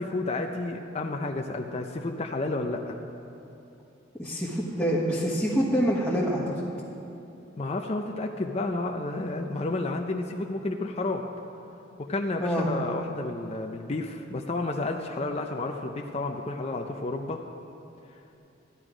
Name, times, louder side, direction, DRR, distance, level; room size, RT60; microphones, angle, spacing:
voice 1, 0.0-3.0 7.6-11.2 12.0-17.4, left 2 dB, 35° left, 3 dB, 0.5 m, -31 dB
voice 2, 4.2-6.6 12.4-12.7, equal, 5° left, -7 dB, 1.3 m, -26 dB
13.5 x 11.0 x 5.0 m, 2.9 s
head